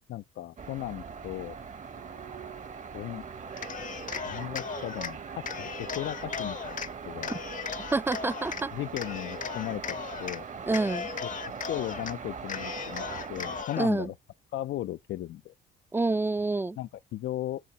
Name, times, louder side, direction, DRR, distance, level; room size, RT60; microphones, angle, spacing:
voice 1, 0.1-1.6 2.9-3.2 4.2-7.4 8.7-10.4 11.7-13.0 13.3-14.1 14.5-15.5 16.8-17.6, left 14 dB, 70° left, 0.5 m, -36 dB
sound 1, 0.6-13.6, right 6 dB, 40° right, 1.0 m, -41 dB
Cheering, 3.5-5.1 5.4-6.9 7.2-8.6 9.0-10.4 10.7-12.1 12.5-13.9, left 7 dB, 40° left, 0.8 m, -37 dB
voice 2, 7.9-8.7 10.7-11.1 13.8-14.1 15.9-16.8, right 3 dB, 10° right, 0.4 m, -27 dB
8.1 x 2.8 x 5.6 m
cardioid pair, 90°, 20 cm